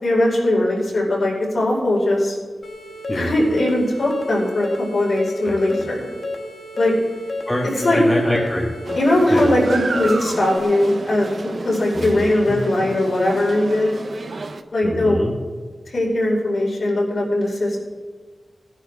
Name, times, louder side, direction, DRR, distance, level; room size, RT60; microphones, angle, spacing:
voice 1, 0.0-2.4 3.1-6.0 6.8-6.9 7.8-8.0 8.9-14.0 14.7-15.2 15.9-17.8, left 1 dB, 65° left, -4 dB, 5.0 m, -19 dB
sound 1, 2.6-10.6, left 2 dB, 85° left, 1.3 m, -32 dB
voice 2, 5.4-5.9 7.5-8.7 9.3-9.5 11.9-12.6 14.8-15.3, left 1 dB, 15° left, -2 dB, 1.7 m, -25 dB
sound 2, 8.8-14.6, right 3 dB, 60° right, 0.7 m, -31 dB
19.5 x 11.0 x 3.6 m, 1.5 s
wide cardioid pair, 90°, 0 cm